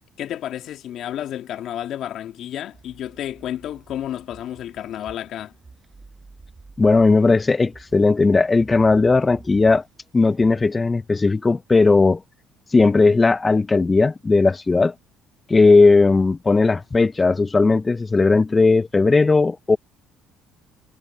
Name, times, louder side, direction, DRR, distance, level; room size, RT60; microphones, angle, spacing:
voice 1, 0.2-5.5, left 11 dB, 65° left, 2.0 m, -31 dB
sound 1, 2.7-10.7, right 3 dB, 25° right, 7.4 m, -48 dB
voice 2, 6.8-9.8 10.1-12.2 12.7-14.9 15.5-19.8, left 3 dB, 25° left, 0.7 m, -17 dB
supercardioid pair, 75°, 0 cm